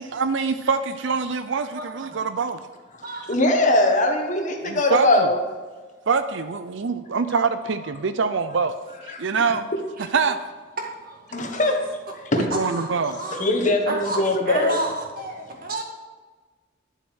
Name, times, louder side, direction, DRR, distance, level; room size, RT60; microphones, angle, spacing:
voice 1, 0.0-2.6 4.6-5.3 6.1-8.7 9.0-9.6 10.1-10.4 12.4-13.2, right 5 dB, 70° right, 0.5 m, -24 dB
voice 2, 1.7-2.2 3.0-3.3 10.8-11.8 12.5-13.5 13.9-14.2 14.5-15.8, right 1 dB, 45° right, 2.1 m, -31 dB
voice 3, 3.3-5.4 9.1-9.2 11.3-11.9 12.3-12.5 13.3-14.8, left 2 dB, 40° left, 1.5 m, -21 dB
11.5 x 7.4 x 6.4 m
head